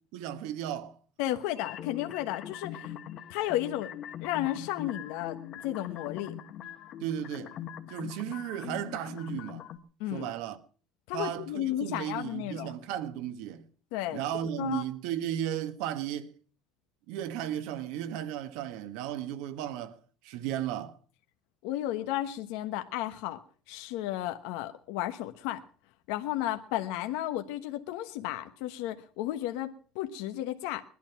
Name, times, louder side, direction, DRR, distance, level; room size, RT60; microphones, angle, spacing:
voice 1, 0.1-1.0 7.0-7.5 7.9-9.7 10.1-10.6 11.1-13.6 14.1-16.3 17.1-20.0 20.2-21.0, right 11 dB, 70° right, 1.5 m, -35 dB
voice 2, 1.2-2.9 3.3-3.9 4.2-6.3 10.0-10.3 11.1-12.7 13.9-14.2 14.6-14.8 21.6-23.4 23.7-25.6 26.1-30.8, left 13 dB, 75° left, 1.2 m, -33 dB
sound 1, 1.6-9.8, left 10 dB, 45° left, 1.4 m, -42 dB
20.5 x 12.0 x 5.9 m
cardioid pair, 150°, 0 cm